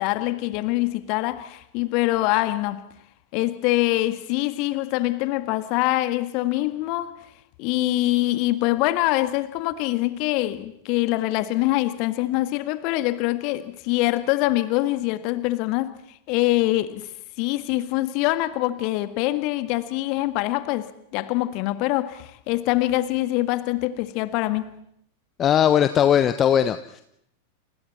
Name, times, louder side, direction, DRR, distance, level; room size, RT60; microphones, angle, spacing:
voice 1, 0.0-2.9 3.3-7.2 7.6-16.0 16.3-17.1 17.4-24.7, left 17 dB, 45° left, 1.7 m, -24 dB
voice 2, 25.4-27.0, left 9 dB, 30° left, 1.0 m, -19 dB
30.0 x 28.5 x 4.3 m
figure-of-eight pair, 90°, 0 cm